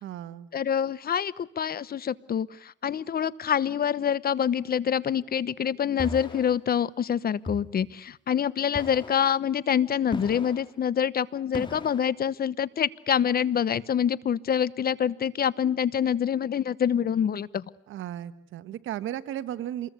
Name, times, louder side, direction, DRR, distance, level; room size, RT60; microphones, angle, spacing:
voice 1, 0.0-0.5 17.9-19.9, right 11 dB, 80° right, 13 dB, 1.5 m, -35 dB
voice 2, 0.5-17.6, left 8 dB, 50° left, 19 dB, 1.0 m, -26 dB
sound 1, 6.0-6.5 7.5-7.8 8.7-9.2 10.1-10.6 11.5-12.1, left 2 dB, 25° left, 3.2 m, -36 dB
27.0 x 21.5 x 8.4 m, 0.69 s
cardioid pair, 90°, 20 cm